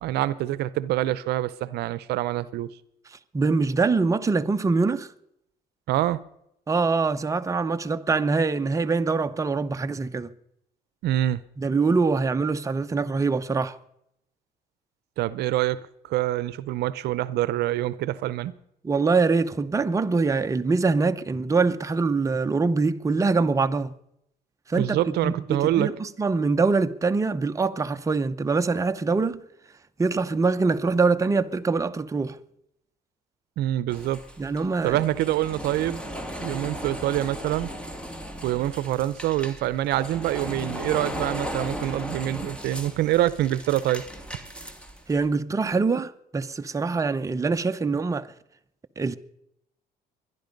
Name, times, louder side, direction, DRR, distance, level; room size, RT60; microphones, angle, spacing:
voice 1, 0.0-2.7 5.9-6.2 11.0-11.4 15.2-18.5 24.8-25.9 33.6-34.2 34.8-36.0 36.4-37.7 38.4-44.0, right 14 dB, 75° right, 0.6 m, -25 dB
voice 2, 3.3-5.1 6.7-10.3 11.6-13.8 18.8-23.9 24.7-29.4 30.0-32.4 34.4-35.0 45.1-48.3 49.0-49.2, right 4 dB, 20° right, 0.8 m, -24 dB
sound 1, 33.9-45.3, equal, 5° left, 2.3 m, -36 dB
22.5 x 11.0 x 5.3 m
cardioid pair, 110°, 17 cm